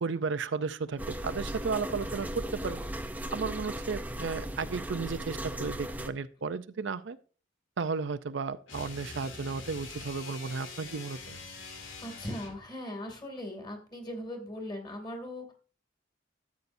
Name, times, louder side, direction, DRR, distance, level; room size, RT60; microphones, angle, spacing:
voice 1, 0.0-2.8 3.3-7.2 7.8-11.4, right 5 dB, 70° right, 13 dB, 0.5 m, -34 dB
sound 1, 1.0-6.1, right 1 dB, 10° right, 0.6 m, -37 dB
sound 2, 8.7-12.7, left 4 dB, 85° left, 2.5 m, -44 dB
voice 2, 11.7-15.5, left 1 dB, 20° left, 3 dB, 2.5 m, -39 dB
13.5 x 8.2 x 2.6 m, 0.38 s
head